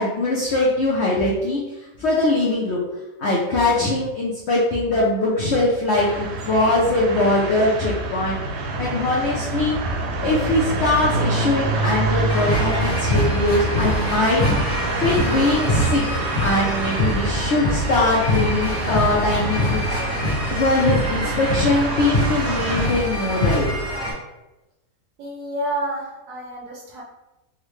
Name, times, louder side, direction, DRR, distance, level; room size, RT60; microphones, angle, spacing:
voice 1, 0.0-2.8 3.2-8.4 8.8-9.8 10.2-14.4 15.0-16.0 16.4-20.0 20.5-23.8, left 2 dB, 70° left, -4 dB, 0.6 m, -21 dB
sound 1, 5.9-22.9, right 2 dB, 85° right, 1.2 m, -27 dB
sound 2, 12.3-24.1, left 1 dB, 30° left, 1.0 m, -24 dB
voice 2, 25.2-27.0, right 1 dB, 65° right, -2 dB, 0.9 m, -29 dB
3.7 x 2.1 x 3.1 m, 1.0 s
omnidirectional pair, 1.8 m